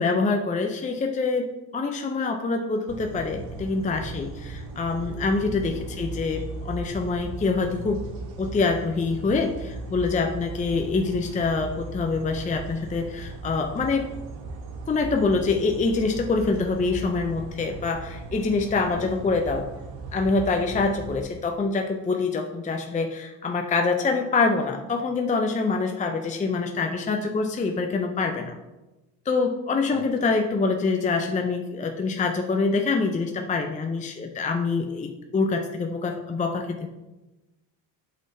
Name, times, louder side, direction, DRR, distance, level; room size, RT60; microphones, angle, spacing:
voice 1, 0.0-8.0 8.4-14.1 14.9-19.7 20.1-28.6 29.3-36.9, left 4 dB, 15° left, 4 dB, 0.6 m, -25 dB
sound 1, 2.9-21.2, right 3 dB, 65° right, 1.3 m, -37 dB
voice 2, 5.4-5.7 10.7-10.9 18.9-19.1 29.9-30.0, left 7 dB, 45° left, 6 dB, 1.2 m, -41 dB
8.0 x 5.8 x 2.8 m, 1.0 s
supercardioid pair, 75°, 47 cm